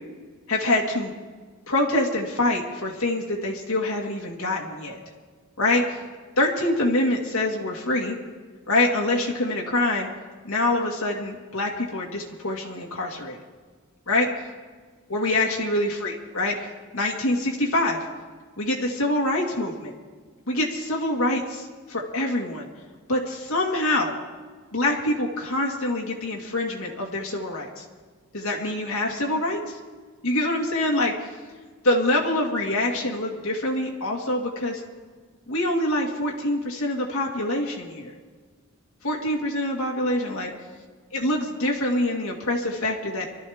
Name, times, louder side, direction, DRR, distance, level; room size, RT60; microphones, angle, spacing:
voice 1, 0.5-1.1 1.7-5.0 5.6-6.0 6.4-8.2 8.7-10.1 10.4-13.4 14.1-14.3 15.1-16.7 16.9-18.1 18.6-19.9 20.5-22.7 23.1-24.2 24.7-27.8 28.3-29.8 30.2-31.1 31.8-34.8 35.5-38.1 39.0-40.5 41.1-43.3, left 1 dB, 75° left, -1 dB, 1.9 m, -25 dB
24.0 x 13.5 x 3.6 m, 1.5 s
head